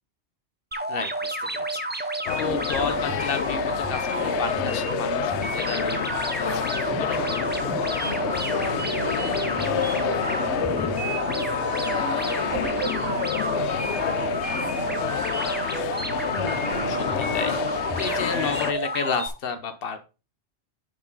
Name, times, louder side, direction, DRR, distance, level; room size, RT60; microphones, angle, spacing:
sound 1, 0.7-19.3, right 2 dB, 10° right, 0.6 m, -30 dB
voice 1, 0.9-7.3 12.9-13.2 16.9-20.0, left 5 dB, 60° left, 9 dB, 1.1 m, -32 dB
sound 2, 2.3-18.7, left 10 dB, 90° left, 0.9 m, -29 dB
sound 3, 6.6-17.7, right 3 dB, 40° right, 1.0 m, -38 dB
voice 2, 8.0-15.7, right 3 dB, 65° right, 1 dB, 2.2 m, -38 dB
9.2 x 4.8 x 3.9 m, 0.31 s
omnidirectional pair, 1.1 m